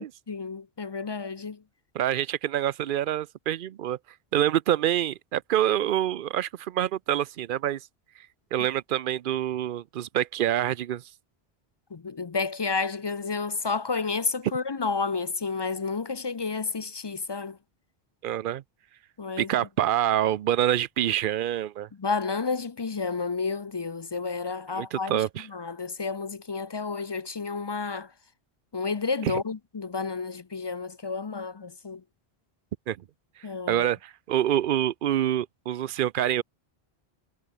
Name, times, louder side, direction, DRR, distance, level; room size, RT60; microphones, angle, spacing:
voice 1, 0.0-1.6 11.9-17.6 19.2-19.6 22.0-25.2 25.5-28.1 28.7-32.0 33.4-33.9, left 4 dB, 35° left, 0.5 m, -31 dB
voice 2, 1.9-4.0 4.3-7.8 8.5-11.0 18.2-18.6 19.4-21.9 24.7-25.5 29.2-29.3 32.9-33.0 33.7-36.4, right 11 dB, 60° right, 0.7 m, -26 dB
omnidirectional pair, 1.1 m